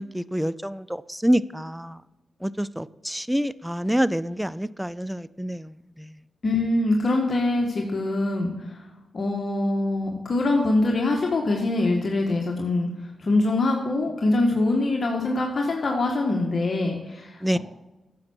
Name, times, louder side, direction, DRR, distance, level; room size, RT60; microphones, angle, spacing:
voice 1, 0.0-2.0 2.4-5.7 6.0-6.1 17.4-17.6, equal, 5° right, 0.4 m, -26 dB
voice 2, 6.4-8.8 9.1-12.9 13.2-17.6, left 2 dB, 55° left, 1.4 m, -24 dB
9.7 x 7.3 x 4.5 m
cardioid pair, 55°, 0 cm